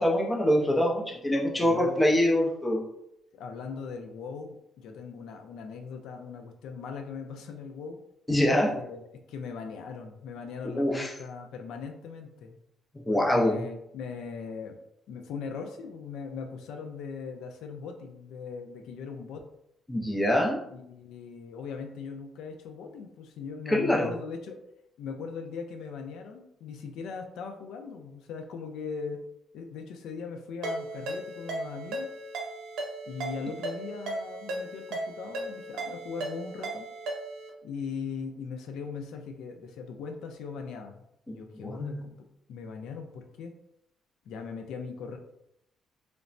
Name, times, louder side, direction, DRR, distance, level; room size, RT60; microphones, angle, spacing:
voice 1, 0.0-2.8 8.3-8.8 10.8-11.1 13.1-13.5 19.9-20.6 23.7-24.1 41.3-42.1, left 1 dB, 15° left, -1 dB, 0.5 m, -25 dB
voice 2, 1.6-2.1 3.3-8.0 8.7-12.6 13.1-14.8 15.1-19.4 20.6-24.6 25.0-29.2 29.5-32.1 33.1-36.9 37.6-43.5 44.3-45.2, left 5 dB, 80° left, 4 dB, 0.3 m, -39 dB
Ringtone, 30.6-37.5, right 2 dB, 90° right, 0.6 m, -36 dB
3.1 x 2.0 x 2.5 m, 0.77 s
cardioid pair, 125°, 0 cm